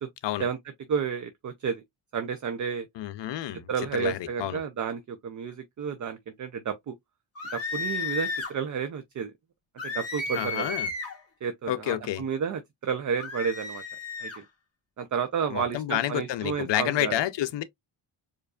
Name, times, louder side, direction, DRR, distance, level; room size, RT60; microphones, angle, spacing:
voice 1, 0.9-1.8 2.1-2.9 3.7-7.0 7.5-9.3 9.8-10.7 11.4-13.8 14.2-14.4 15.0-17.2, right 6 dB, 40° right, 0.5 m, -31 dB
voice 2, 3.0-4.6 10.3-10.9 11.7-12.2 15.5-17.6, left 13 dB, 60° left, 0.6 m, -29 dB
sound 1, 7.4-8.6 9.8-11.2 13.2-14.4, left 4 dB, 30° left, 2.2 m, -33 dB
4.7 x 2.5 x 2.3 m
wide cardioid pair, 145°, 49 cm